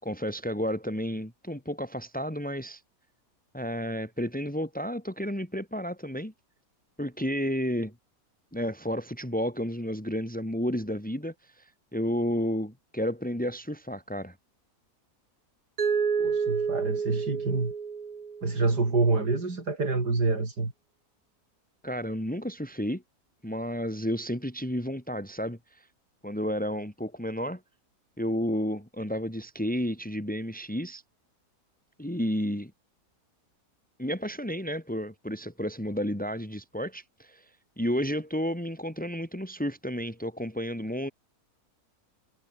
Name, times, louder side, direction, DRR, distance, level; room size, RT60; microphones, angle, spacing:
voice 1, 0.0-2.8 3.5-6.3 7.0-7.9 8.5-14.3 21.8-23.0 23.4-25.9 26.2-27.6 28.2-31.0 32.0-32.7 34.0-37.5 37.8-41.1, equal, 5° left, 3.7 m, -31 dB
Mallet percussion, 15.8-18.7, right 6 dB, 70° right, 2.5 m, -29 dB
voice 2, 16.2-17.7 18.4-20.7, right 3 dB, 85° right, 4.8 m, -27 dB
omnidirectional pair, 1.7 m